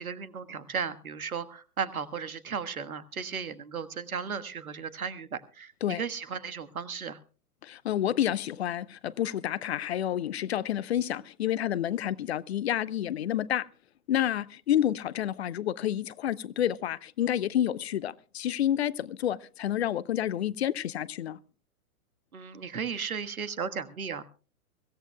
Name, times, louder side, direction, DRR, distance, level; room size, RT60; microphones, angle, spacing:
voice 1, 0.0-7.2 22.3-24.3, right 6 dB, 70° right, 1.5 m, -35 dB
voice 2, 7.6-13.7 14.1-21.4, left 11 dB, 45° left, 0.7 m, -29 dB
24.0 x 16.0 x 2.2 m
figure-of-eight pair, 110°, 44 cm